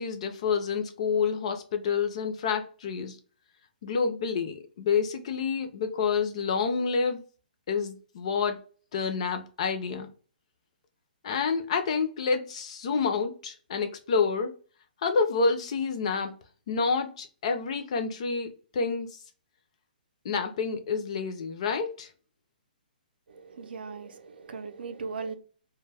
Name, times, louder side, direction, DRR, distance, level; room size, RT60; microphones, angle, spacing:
voice 1, 0.0-3.2 3.8-7.2 7.7-8.6 8.9-10.1 11.2-14.5 15.0-16.3 16.7-19.2 20.2-22.1, left 5 dB, 40° left, 0.4 m, -28 dB
voice 2, 23.3-25.4, right 4 dB, 80° right, 0.5 m, -38 dB
2.2 x 2.0 x 3.2 m
hypercardioid pair, 170°, 5 cm